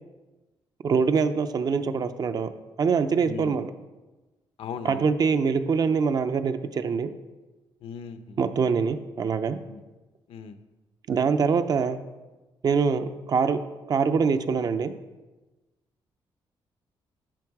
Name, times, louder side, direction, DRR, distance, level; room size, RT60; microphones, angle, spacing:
voice 1, 0.8-2.5 2.8-3.7 4.8-7.1 8.4-9.6 11.1-12.0 12.6-13.6 13.9-14.9, right 5 dB, 45° right, 10 dB, 0.5 m, -24 dB
voice 2, 3.2-3.6 4.6-5.1 7.8-8.5 9.7-9.8 10.3-10.6, left 6 dB, 80° left, 10 dB, 0.7 m, -38 dB
10.5 x 7.1 x 4.7 m, 1.2 s
wide cardioid pair, 155°, 10 cm